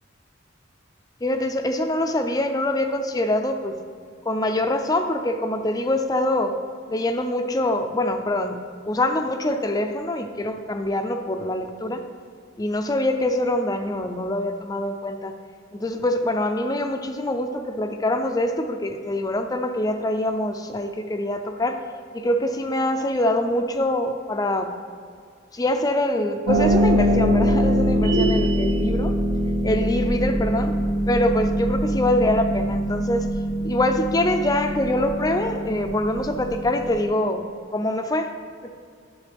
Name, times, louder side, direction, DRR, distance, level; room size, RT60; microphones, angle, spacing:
voice 1, 1.2-3.8 4.2-6.5 6.9-8.6 8.8-12.0 12.6-15.4 15.7-21.8 22.1-24.7 25.5-29.1 29.6-30.7 31.1-33.3 33.6-38.3 38.6-38.7, left 1 dB, 20° left, 7 dB, 0.4 m, -24 dB
Harp, 26.5-37.0, equal, 85° right, 1.5 m, -23 dB
sound 1, 28.0-28.9, right 3 dB, 65° right, 0.8 m, -27 dB
11.5 x 7.0 x 3.4 m, 2.2 s
head